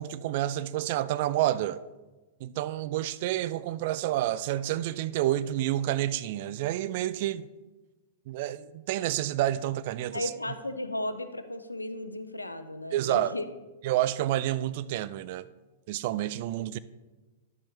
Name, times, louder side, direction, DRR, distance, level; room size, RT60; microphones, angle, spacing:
voice 1, 0.0-1.8 2.4-7.5 8.3-10.3 12.9-13.3 13.8-15.5 15.9-16.8, right 13 dB, 50° right, 0.3 m, -29 dB
voice 2, 10.1-13.4, left 1 dB, 85° left, 0.5 m, -35 dB
11.0 x 7.0 x 3.2 m
figure-of-eight pair, 100°, 0 cm